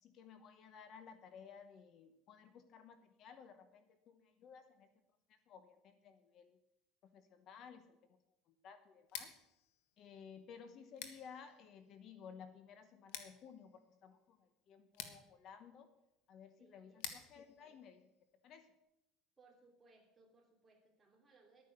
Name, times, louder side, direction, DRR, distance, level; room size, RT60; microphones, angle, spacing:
voice 1, 0.0-4.9 5.3-6.6 7.1-8.0 8.5-9.3 10.0-15.9 16.3-18.0 18.4-18.7, left 7 dB, 40° left, 10 dB, 0.9 m, -56 dB
Scissors, 9.0-18.8, left 9 dB, 85° left, 1.6 m, -54 dB
voice 2, 16.6-17.0 19.4-21.6, right 3 dB, 15° right, 0 dB, 3.0 m, -67 dB
11.5 x 9.4 x 6.7 m, 0.86 s
cardioid pair, 160°, 0 cm